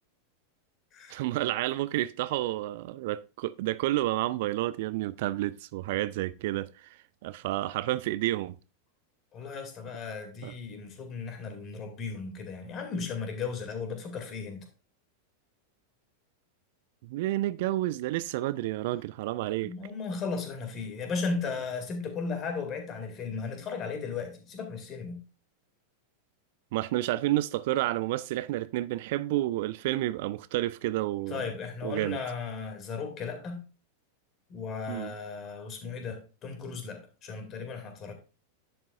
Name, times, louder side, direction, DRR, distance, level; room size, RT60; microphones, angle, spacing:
voice 1, 1.1-8.6 10.4-10.5 17.0-19.7 26.7-31.5 31.8-32.2 34.9-35.1, right 16 dB, 50° right, 0.3 m, -30 dB
voice 2, 9.3-14.7 19.6-25.2 31.3-33.6 34.5-38.1, left 5 dB, 30° left, 2.4 m, -36 dB
10.5 x 7.8 x 2.5 m
figure-of-eight pair, 90°, 0 cm